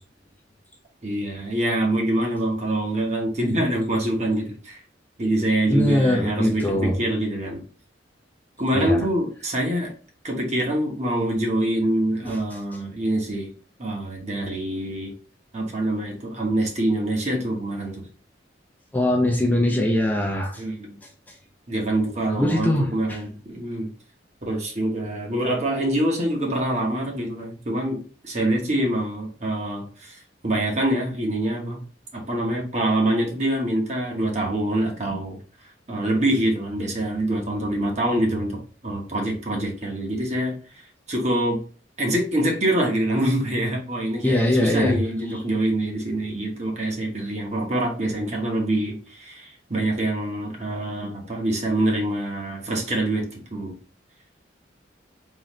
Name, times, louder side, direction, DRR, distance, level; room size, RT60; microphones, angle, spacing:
voice 1, 1.0-4.8 5.2-7.6 8.6-9.9 10.2-13.5 13.8-15.1 15.5-18.0 20.6-21.0 21.7-23.9 24.4-31.8 32.1-35.4 35.9-40.8 41.1-41.6 42.0-53.7, right 1 dB, 40° right, 0 dB, 1.1 m, -25 dB
voice 2, 5.7-7.0 8.7-9.1 12.2-12.4 12.7-12.8 18.9-20.6 21.3-21.4 22.3-23.2 44.2-45.0, left 1 dB, 10° left, 0 dB, 0.5 m, -22 dB
3.9 x 3.0 x 3.1 m, 0.40 s
head